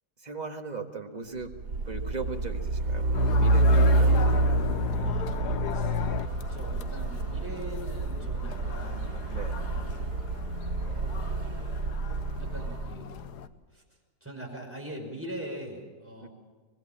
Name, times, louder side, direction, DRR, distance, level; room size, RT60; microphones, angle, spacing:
voice 1, 0.2-1.5 1.9-5.1 9.3-9.6 16.2-16.3, right 4 dB, 25° right, 3 dB, 1.8 m, -39 dB
Truck, 1.5-12.9, right 2 dB, 90° right, 2.2 m, -27 dB
sound 1, 3.1-13.5, left 9 dB, 85° left, 1.5 m, -36 dB
voice 2, 5.0-5.9 6.5-9.3 9.8-10.4 12.4-13.4 13.7-13.8 14.2-16.3, right 1 dB, 10° right, 0 dB, 5.4 m, -42 dB
24.5 x 20.5 x 7.5 m, 1.4 s
omnidirectional pair, 1.7 m